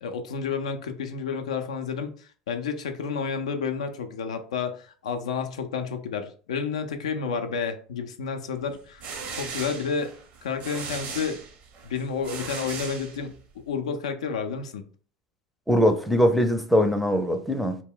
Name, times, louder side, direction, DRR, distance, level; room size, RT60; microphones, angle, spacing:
voice 1, 0.0-9.1 9.3-10.1 10.4-11.4 11.8-13.3 13.7-14.8, left 5 dB, 85° left, 7 dB, 0.4 m, -30 dB
sound 1, 8.7-13.6, right 5 dB, 50° right, 0.6 m, -38 dB
voice 2, 15.7-17.8, equal, ahead, 6 dB, 0.5 m, -21 dB
2.2 x 2.1 x 3.6 m, 0.42 s
hypercardioid pair, 85°, 3 cm